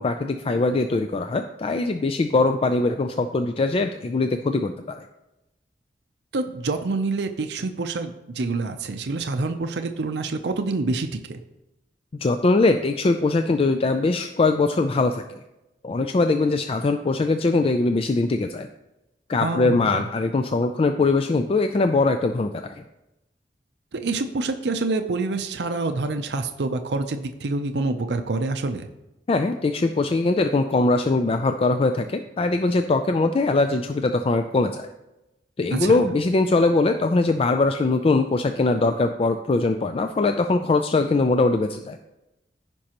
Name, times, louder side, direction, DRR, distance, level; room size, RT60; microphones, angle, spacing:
voice 1, 0.0-5.0 12.2-15.2 15.8-18.7 19.3-22.7 29.3-34.9 35.6-42.0, left 3 dB, 35° left, 7 dB, 0.4 m, -21 dB
voice 2, 6.3-11.4 19.4-19.9 23.9-28.9 35.7-36.0, right 3 dB, 70° right, 7 dB, 0.6 m, -27 dB
15.0 x 5.3 x 2.9 m, 0.94 s
head